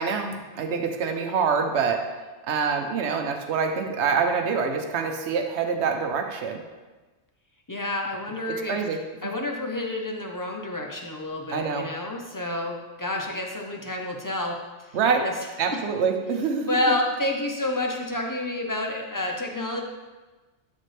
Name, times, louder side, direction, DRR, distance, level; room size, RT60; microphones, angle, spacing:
voice 1, 0.0-2.0 2.5-6.6 8.5-9.3 11.5-11.9 14.9-15.3 15.6-16.8, right 5 dB, 75° right, 4 dB, 1.0 m, -26 dB
voice 2, 7.7-8.8 9.2-14.6 15.2-15.3 15.7-15.8 16.7-19.8, left 1 dB, 20° left, 1 dB, 0.6 m, -29 dB
12.0 x 4.2 x 3.3 m, 1.2 s
omnidirectional pair, 1.2 m